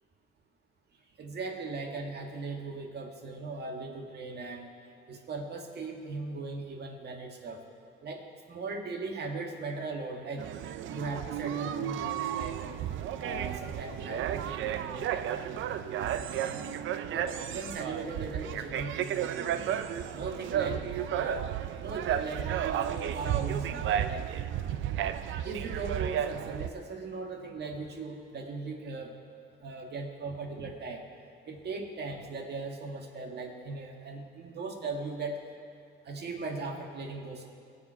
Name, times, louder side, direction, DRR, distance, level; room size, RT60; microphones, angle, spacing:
voice 1, 1.2-4.7 5.1-7.6 8.0-10.5 10.9-12.7 13.2-16.1 16.4-16.7 17.1-19.8 20.1-20.8 21.1-21.5 21.8-24.3 25.0-25.2 25.4-29.1 29.6-31.0 31.5-35.4 36.1-37.5, right 3 dB, 55° right, 2 dB, 1.9 m, -38 dB
sound 1, 10.4-26.7, right 10 dB, 75° right, 0.5 m, -33 dB
21.0 x 7.4 x 4.7 m, 2.3 s
cardioid pair, 90°, 20 cm